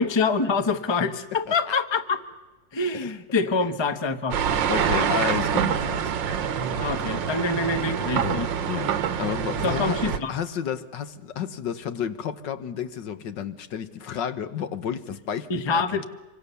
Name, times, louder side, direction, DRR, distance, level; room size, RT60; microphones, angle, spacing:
voice 1, 0.0-2.2 2.7-4.4 6.8-8.5 9.6-10.4 15.5-16.1, left 4 dB, 20° left, 11 dB, 0.9 m, -25 dB
sound 1, 4.3-10.2, right 8 dB, 85° right, 1.8 m, -26 dB
voice 2, 4.7-6.1 8.2-8.9 9.2-16.1, left 8 dB, 75° left, 11 dB, 1.8 m, -31 dB
26.0 x 24.5 x 6.9 m, 1.1 s
omnidirectional pair, 2.0 m